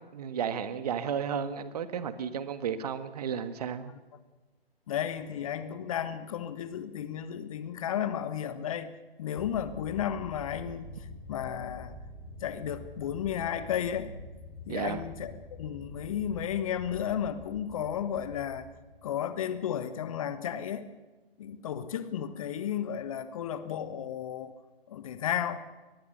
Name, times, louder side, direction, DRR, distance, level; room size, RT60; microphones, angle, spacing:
voice 1, 0.1-3.9 14.7-15.0, right 7 dB, 40° right, 11 dB, 1.6 m, -33 dB
voice 2, 4.9-8.9 9.2-10.9 11.3-11.9 12.4-14.1 14.7-15.3 15.6-18.7 19.0-20.9 21.4-24.5 24.9-25.6, left 9 dB, 35° left, 12 dB, 1.3 m, -33 dB
sound 1, 9.4-19.5, left 1 dB, 5° left, 2.7 m, -47 dB
24.0 x 20.0 x 6.6 m, 1.2 s
figure-of-eight pair, 135°, 30 cm